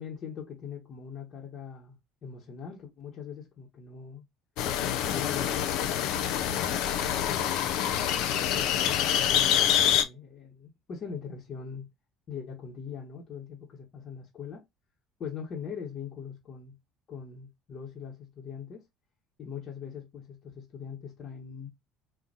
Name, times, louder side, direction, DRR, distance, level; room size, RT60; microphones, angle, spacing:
voice 1, 0.0-4.2 5.1-6.8 7.2-7.8 8.5-11.9 12.3-14.6 15.2-16.8 17.1-18.8 19.4-21.7, left 6 dB, 45° left, 1.1 m, -41 dB
sound 1, 4.6-10.0, left 10 dB, 65° left, 0.4 m, -26 dB
4.0 x 2.5 x 2.5 m
hypercardioid pair, 60°, 0 cm